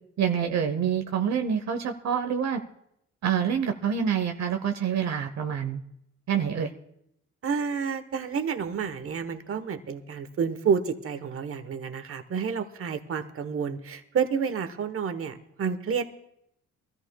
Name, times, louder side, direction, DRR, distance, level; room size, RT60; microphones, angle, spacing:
voice 1, 0.2-2.6 3.2-5.8 6.3-6.7, right 8 dB, 65° right, 6 dB, 0.9 m, -27 dB
voice 2, 7.4-16.1, right 6 dB, 45° right, 9 dB, 1.2 m, -29 dB
23.0 x 14.0 x 2.3 m, 0.78 s
cardioid pair, 90°, 30 cm